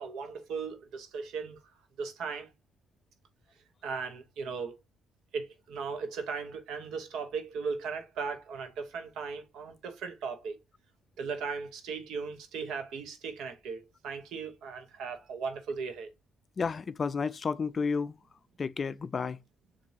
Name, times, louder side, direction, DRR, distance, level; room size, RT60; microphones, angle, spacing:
voice 1, 0.0-1.6 2.0-2.5 3.8-4.7 5.3-10.6 11.2-16.1, right 5 dB, 85° right, 1.0 m, -37 dB
voice 2, 16.6-18.2 18.6-19.4, left 5 dB, 40° left, 0.3 m, -31 dB
7.0 x 2.6 x 2.7 m
cardioid pair, 90°, 0 cm